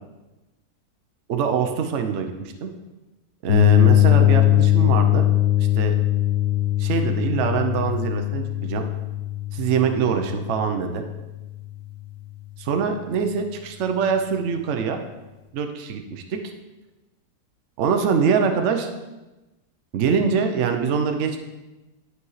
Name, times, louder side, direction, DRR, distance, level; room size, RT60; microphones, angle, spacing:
voice 1, 1.3-2.7 3.4-5.3 5.6-5.9 6.8-8.8 9.5-11.0 12.6-15.0 15.5-16.4 17.8-18.9 19.9-21.4, right 6 dB, 60° right, 6 dB, 0.9 m, -24 dB
sound 1, 3.5-11.2, left 14 dB, 55° left, 1.0 m, -20 dB
11.0 x 4.9 x 3.2 m, 1.1 s
omnidirectional pair, 1.7 m